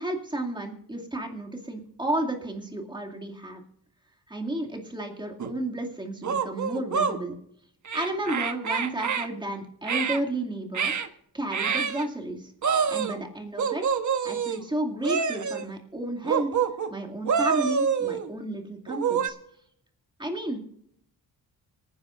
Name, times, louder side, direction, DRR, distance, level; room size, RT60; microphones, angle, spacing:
voice 1, 0.0-3.6 4.3-7.4 7.9-10.9 11.3-12.5 12.9-13.8 14.2-16.5 16.9-19.4 20.2-20.6, right 1 dB, 10° right, 1 dB, 2.4 m, -32 dB
sound 1, 5.4-5.5 6.2-7.2 7.8-9.3 9.8-10.2 10.7-11.1 11.5-12.0 12.6-13.2 13.6-14.6 15.0-15.6 16.2-16.9 17.2-18.3 18.9-19.3, right 6 dB, 50° right, 1.1 m, -26 dB
25.5 x 10.0 x 2.5 m, 0.69 s
wide cardioid pair, 135°, 39 cm